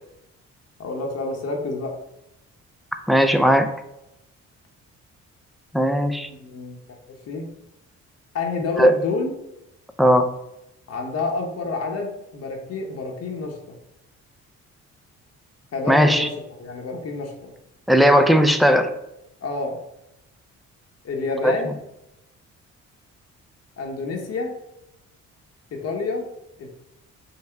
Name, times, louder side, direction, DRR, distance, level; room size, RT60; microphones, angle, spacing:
voice 1, 0.8-1.9 6.4-6.8 7.3-7.5 8.3-9.3 10.9-13.8 15.7-17.5 19.4-19.8 21.0-21.8 23.8-24.5 25.7-26.3 26.6-26.7, left 3 dB, 55° left, 1 dB, 0.9 m, -28 dB
voice 2, 3.1-3.7 5.7-6.3 8.8-8.9 10.0-10.3 15.9-16.3 17.9-18.9 21.4-21.5, equal, ahead, 8 dB, 0.3 m, -17 dB
5.6 x 2.1 x 3.3 m, 0.86 s
cardioid pair, 90°, 30 cm